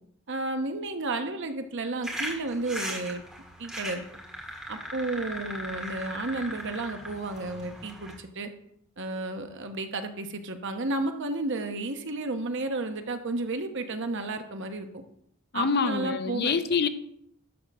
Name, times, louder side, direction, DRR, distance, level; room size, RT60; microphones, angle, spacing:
voice 1, 0.3-3.2 3.6-4.0 4.7-8.5 9.0-14.9 15.5-16.5, right 2 dB, 55° right, 7 dB, 1.0 m, -32 dB
sound 1, 2.0-8.1, equal, 5° right, 1.8 m, -38 dB
voice 2, 15.5-16.9, left 5 dB, 50° left, 11 dB, 0.6 m, -26 dB
11.5 x 3.9 x 6.6 m, 0.71 s
head